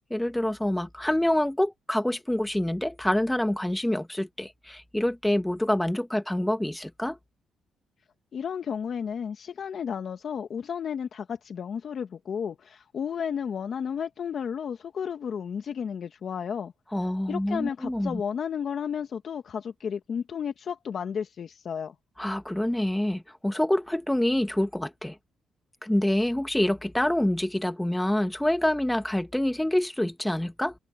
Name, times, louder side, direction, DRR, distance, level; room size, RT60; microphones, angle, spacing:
voice 1, 0.1-7.2 16.9-18.2 22.2-25.2 25.8-30.7, left 1 dB, 5° left, 1.1 m, -26 dB
voice 2, 8.3-16.7 17.3-21.9, left 7 dB, 55° left, 1.3 m, -33 dB
cardioid pair, 90°, 0 cm